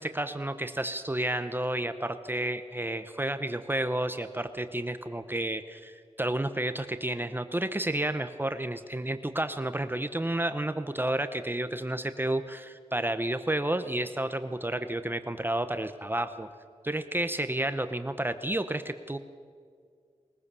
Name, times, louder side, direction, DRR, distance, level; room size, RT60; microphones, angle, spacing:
voice 1, 0.0-16.5 16.8-19.2, right 1 dB, 15° right, 10 dB, 0.8 m, -31 dB
21.5 x 20.5 x 6.9 m, 2.2 s
wide cardioid pair, 110°, 12 cm